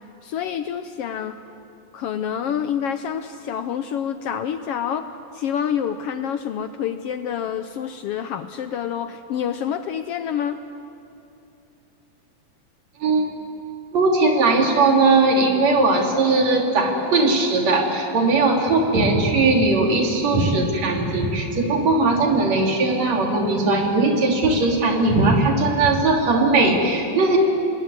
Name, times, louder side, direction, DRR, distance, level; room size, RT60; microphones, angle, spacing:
voice 1, 0.2-1.4 1.9-5.1 5.3-10.6, left 8 dB, 80° left, 9 dB, 1.4 m, -27 dB
voice 2, 13.0-13.3 13.9-27.4, right 3 dB, 60° right, 1 dB, 4.2 m, -19 dB
26.0 x 20.0 x 9.7 m, 2.7 s
omnidirectional pair, 3.5 m